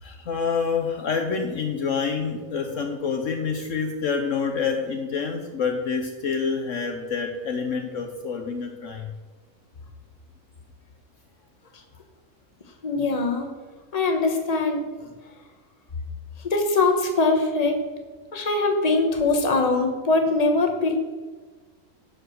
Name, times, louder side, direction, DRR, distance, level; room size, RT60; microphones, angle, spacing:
voice 1, 0.0-9.1, left 5 dB, 60° left, 4 dB, 1.1 m, -27 dB
voice 2, 12.8-13.5 13.9-14.8 16.4-17.8 18.3-21.0, left 3 dB, 30° left, 4 dB, 1.2 m, -22 dB
11.0 x 4.9 x 6.4 m, 1.3 s
omnidirectional pair, 1.5 m